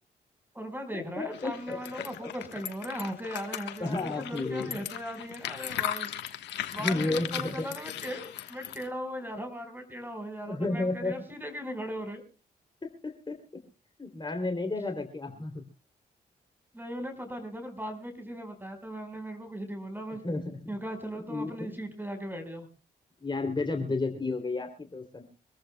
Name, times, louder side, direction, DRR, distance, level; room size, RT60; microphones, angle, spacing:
voice 1, 0.5-6.1 6.7-12.2 16.7-20.2 20.7-22.7, equal, 10° right, 7 dB, 4.7 m, -38 dB
voice 2, 1.2-1.8 3.8-4.8 6.8-7.7 10.5-11.1 12.8-13.4 14.0-15.7 20.2-20.8 21.1-21.7 23.2-25.2, left 2 dB, 25° left, 4 dB, 3.1 m, -32 dB
sound 1, 1.3-8.9, left 11 dB, 85° left, 1.3 m, -37 dB
25.5 x 14.0 x 2.3 m, 0.34 s
supercardioid pair, 55°, 18 cm